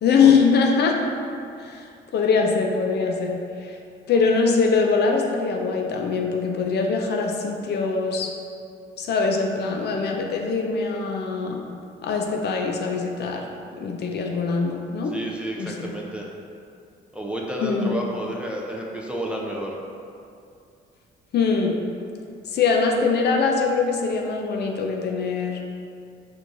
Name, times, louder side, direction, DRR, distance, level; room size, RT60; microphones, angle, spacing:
voice 1, 0.0-1.0 1.6-1.9 2.1-3.8 4.1-8.3 9.0-11.6 12.0-13.4 13.8-15.1 15.6-15.9 17.6-17.9 21.3-21.8 22.5-25.6, left 5 dB, 55° left, 1 dB, 0.4 m, -22 dB
voice 2, 15.1-16.3 17.1-19.8, equal, 5° right, -3 dB, 0.4 m, -30 dB
4.5 x 2.5 x 2.5 m, 2.4 s
cardioid pair, 90°, 20 cm